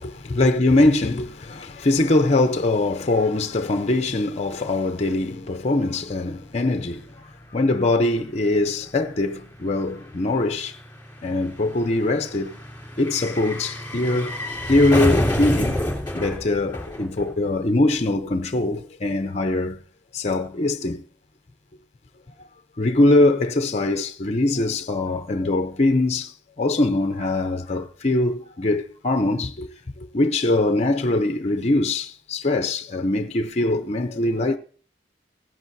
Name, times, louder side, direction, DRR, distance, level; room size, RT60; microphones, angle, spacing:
voice 1, 0.0-7.1 7.5-10.8 11.2-12.5 13.0-14.4 14.7-15.8 16.1-19.8 20.1-21.0 22.8-29.7 30.0-34.6, left 2 dB, 35° left, 0.6 m, -22 dB
sound 1, 7.0-7.1 7.3-17.7 17.9-18.0, left 1 dB, 10° left, 3.2 m, -29 dB
17.0 x 10.5 x 2.7 m
head